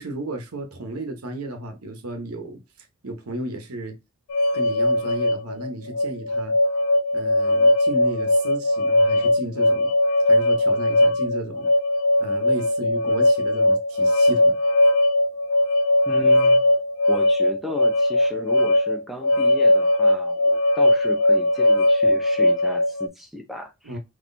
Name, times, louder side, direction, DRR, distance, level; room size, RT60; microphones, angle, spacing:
voice 1, 0.0-4.0 4.5-6.6 7.1-9.9 10.3-11.7 12.2-14.6 23.8-24.0, right 1 dB, 90° right, 1.0 m, -34 dB
sound 1, 4.3-23.1, left 1 dB, 70° left, 0.3 m, -20 dB
voice 2, 16.1-16.6 17.1-24.0, left 1 dB, ahead, 0.7 m, -35 dB
3.8 x 3.0 x 2.6 m
head